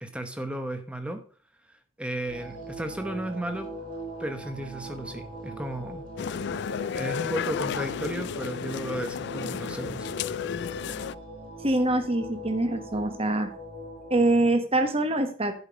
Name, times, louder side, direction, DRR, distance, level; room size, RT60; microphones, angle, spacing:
voice 1, 0.0-1.2 1.7-3.7 4.2-6.0 6.9-10.1, right 1 dB, 5° right, 7 dB, 1.0 m, -34 dB
sound 1, 2.3-14.5, equal, 45° right, 4.1 m, -40 dB
sound 2, 6.2-11.1, left 7 dB, 55° left, 0.3 m, -33 dB
voice 2, 11.6-13.5 14.1-15.5, right 2 dB, 30° right, 7 dB, 1.3 m, -24 dB
11.0 x 5.3 x 5.1 m, 0.40 s
head